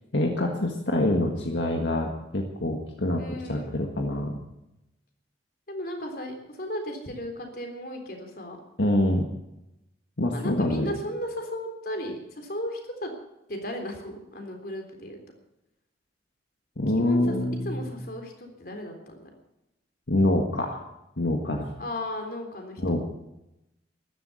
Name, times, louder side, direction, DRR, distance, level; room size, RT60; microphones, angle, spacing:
voice 1, 0.1-3.2 3.5-4.3 8.8-9.3 10.2-10.9 16.8-17.8 20.1-20.8 21.2-21.7 22.8-23.0, left 1 dB, 75° left, 2 dB, 1.7 m, -25 dB
voice 2, 3.2-3.8 5.7-8.6 10.3-13.1 13.5-15.2 16.9-17.2 17.7-19.2 21.8-23.0, equal, 55° left, 4 dB, 3.6 m, -35 dB
14.5 x 12.0 x 8.4 m, 0.89 s
head